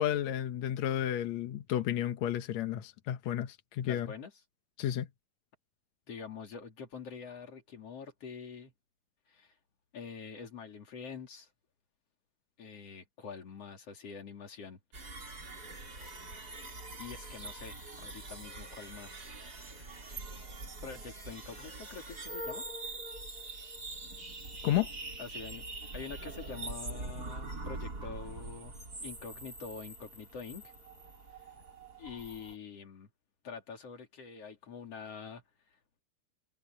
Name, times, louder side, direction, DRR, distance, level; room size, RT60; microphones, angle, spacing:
voice 1, 0.0-4.1 4.8-5.1 24.6-24.9, left 11 dB, 75° left, 1.6 m, -32 dB
voice 2, 3.8-4.3 6.1-8.7 9.3-9.5 9.9-11.5 12.6-14.8 15.5-15.8 17.0-19.3 20.8-22.6 25.2-25.6 25.9-28.7 29.0-30.7 32.0-33.1 33.4-35.4, left 5 dB, 40° left, 3.8 m, -45 dB
sound 1, 14.9-32.5, right 2 dB, 25° right, 4.4 m, -44 dB
omnidirectional pair, 4.7 m